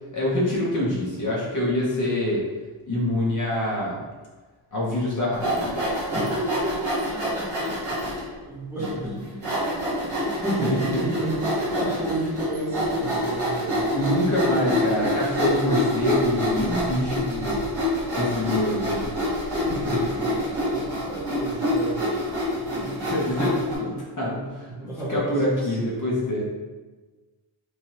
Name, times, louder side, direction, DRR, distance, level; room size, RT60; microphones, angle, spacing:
voice 1, 0.1-2.4 2.9-4.0 4.7-5.8 10.5-11.0 13.9-17.6 18.1-19.1 19.6-20.0 22.8-24.7 25.1-26.4, left 1 dB, 40° left, -5 dB, 0.7 m, -25 dB
Sawing, 5.3-8.2 8.8-8.9 9.4-23.8, equal, 50° right, 1.2 m, -26 dB
voice 2, 6.1-13.9 14.2-14.6 19.8-22.1 24.7-26.0, right 1 dB, 5° right, -8 dB, 0.6 m, -32 dB
3.1 x 2.8 x 2.8 m, 1.3 s
wide cardioid pair, 165°, 50 cm